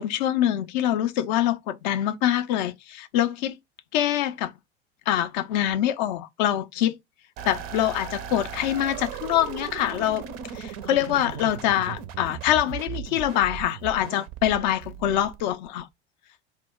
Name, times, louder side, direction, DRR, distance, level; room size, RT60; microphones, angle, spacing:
voice 1, 0.0-3.6 3.9-4.5 5.1-7.0 7.5-10.2 10.5-15.9, left 11 dB, 45° left, 0.4 m, -25 dB
sound 1, 7.4-15.8, right 10 dB, 35° right, 0.4 m, -37 dB
2.1 x 2.1 x 3.5 m
figure-of-eight pair, 85°, 33 cm